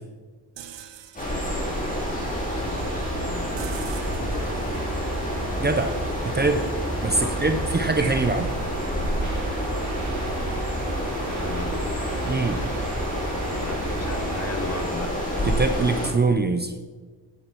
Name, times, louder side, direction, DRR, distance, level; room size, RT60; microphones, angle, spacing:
sound 1, 0.6-6.4, right 8 dB, 75° right, 1.0 m, -44 dB
sound 2, 1.2-16.1, equal, 20° left, 3.8 m, -29 dB
sound 3, 2.0-14.9, right 2 dB, 40° right, 2.3 m, -33 dB
voice 1, 3.1-3.7 4.2-4.5 7.2-7.4 11.0-11.8 13.6-15.2, left 3 dB, 35° left, 9 dB, 1.1 m, -37 dB
voice 2, 5.6-5.9 6.2-6.6 7.0-8.5 12.2-12.6 15.5-16.7, right 3 dB, 25° right, 8 dB, 0.7 m, -23 dB
11.0 x 10.0 x 4.6 m, 1.4 s
wide cardioid pair, 125°, 44 cm